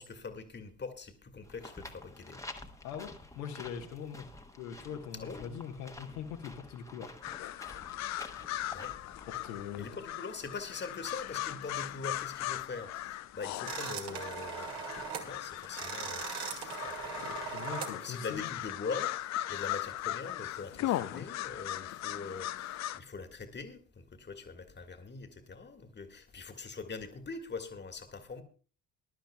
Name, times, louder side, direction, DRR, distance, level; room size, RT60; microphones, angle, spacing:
voice 1, 0.0-2.5 5.2-5.5 8.7-9.0 9.8-17.7 18.0-28.4, left 4 dB, 20° left, 1.7 m, -43 dB
sound 1, 1.4-9.8, left 2 dB, 5° left, 1.2 m, -50 dB
voice 2, 2.8-4.3 4.5-7.1 9.3-9.9 17.2-18.5, left 8 dB, 70° left, 1.4 m, -42 dB
sound 2, 7.2-23.0, left 14 dB, 40° left, 0.6 m, -38 dB
sound 3, 13.7-15.3 15.6-18.0, right 7 dB, 55° right, 2.0 m, -40 dB
21.5 x 11.5 x 2.3 m
figure-of-eight pair, 55°, 46 cm